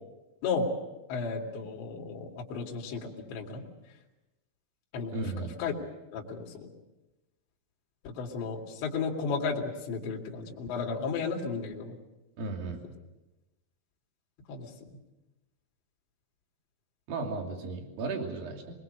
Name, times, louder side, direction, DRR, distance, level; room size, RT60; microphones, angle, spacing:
voice 1, 1.1-3.6 4.9-5.7 6.1-6.7 8.0-11.9 14.5-14.7, left 4 dB, 65° left, -1 dB, 4.5 m, -34 dB
voice 2, 5.1-5.6 12.4-12.8 17.1-18.6, right 3 dB, 50° right, 2 dB, 4.3 m, -34 dB
25.5 x 21.0 x 6.7 m, 1.0 s
omnidirectional pair, 5.7 m